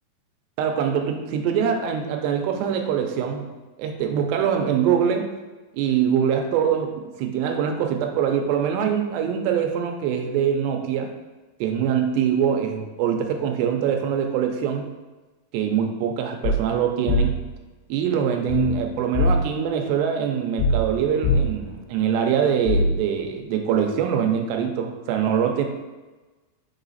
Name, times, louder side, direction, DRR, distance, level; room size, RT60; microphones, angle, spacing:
voice 1, 0.6-3.5 3.8-5.3 5.7-6.9 7.2-11.1 11.6-14.8 15.5-17.4 17.9-25.6, right 8 dB, 85° right, 4 dB, 2.8 m, -23 dB
sound 1, 16.4-16.7 17.1-17.5 18.5-19.6 20.6-21.7 22.7-23.1, left 2 dB, 85° left, 2.7 m, -22 dB
6.3 x 4.0 x 4.0 m, 1.2 s
omnidirectional pair, 4.8 m